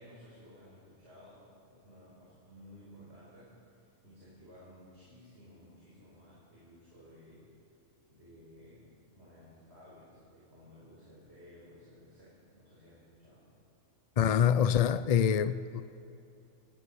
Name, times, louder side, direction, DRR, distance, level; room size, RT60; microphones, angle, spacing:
voice 1, 0.0-7.5 8.1-13.5, equal, 55° right, 5.5 m, -56 dB
voice 2, 14.2-15.8, left 8 dB, 55° left, 0.4 m, -25 dB
27.5 x 18.0 x 5.7 m
omnidirectional pair, 1.3 m